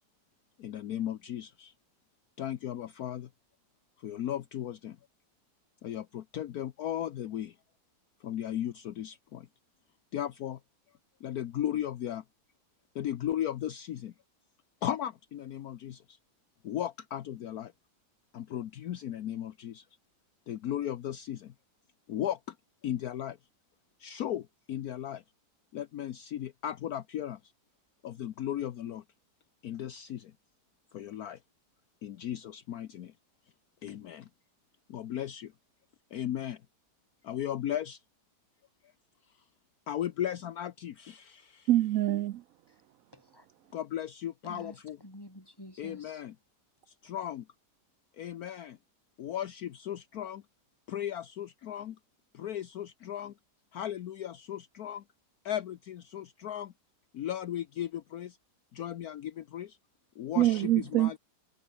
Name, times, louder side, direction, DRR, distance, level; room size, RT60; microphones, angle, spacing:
voice 1, 0.6-1.7 2.4-3.3 4.0-5.0 5.8-7.6 8.2-9.5 10.1-10.6 11.2-12.2 12.9-14.1 14.8-16.2 16.6-17.7 18.3-19.9 20.5-21.5 22.1-22.6 22.8-23.4 24.0-25.2 25.7-27.5 28.0-29.0 29.6-30.3 30.9-31.4 32.0-33.1 33.8-34.3 34.9-35.5 36.1-36.6 37.2-38.0 39.9-41.7 43.7-45.0 45.8-46.3 46.9-47.5 48.1-48.8 49.2-50.4 50.9-52.0 52.3-53.3 53.7-55.0 55.4-56.7 57.1-58.4 58.7-59.8 60.2-61.2, left 11 dB, 65° left, 1.3 m, -36 dB
voice 2, 41.7-42.4 60.4-61.2, right 14 dB, 70° right, 0.8 m, -25 dB
voice 3, 43.1-43.5 44.4-46.3, equal, 15° left, 7.5 m, -50 dB
omnidirectional pair, 1.8 m